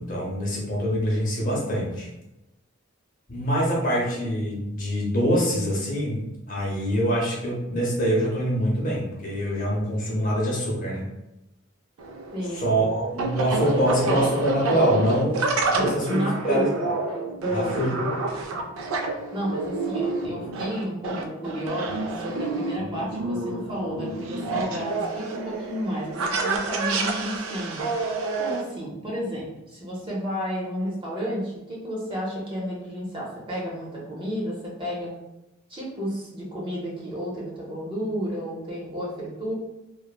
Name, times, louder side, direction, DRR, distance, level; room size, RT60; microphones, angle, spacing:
voice 1, 0.0-2.1 3.3-11.0 12.5-16.9 17.5-18.1, equal, 40° left, -4 dB, 0.6 m, -25 dB
sound 1, 12.0-28.6, right 3 dB, 80° right, 0.4 m, -29 dB
voice 2, 12.3-12.7 15.7-16.8 17.4-18.2 19.3-27.9 28.4-35.1 35.7-39.5, equal, 25° right, -5 dB, 0.6 m, -31 dB
3.0 x 2.0 x 2.3 m, 0.93 s
head